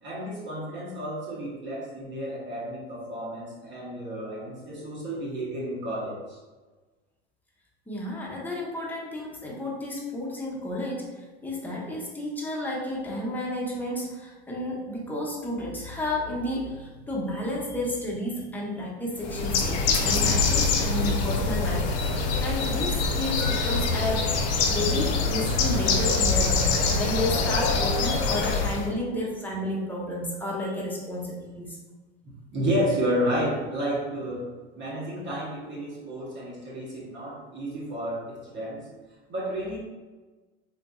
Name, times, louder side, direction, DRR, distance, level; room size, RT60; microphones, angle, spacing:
voice 1, 0.0-6.4 30.7-30.9 32.5-38.9 39.3-39.8, equal, 35° right, -5 dB, 1.0 m, -31 dB
voice 2, 7.9-11.1 11.4-31.8, left 1 dB, 5° left, -4 dB, 0.8 m, -32 dB
Bird, 19.2-28.9, left 4 dB, 50° left, 0.6 m, -24 dB
4.0 x 2.5 x 2.3 m, 1.3 s
hypercardioid pair, 95°, 31 cm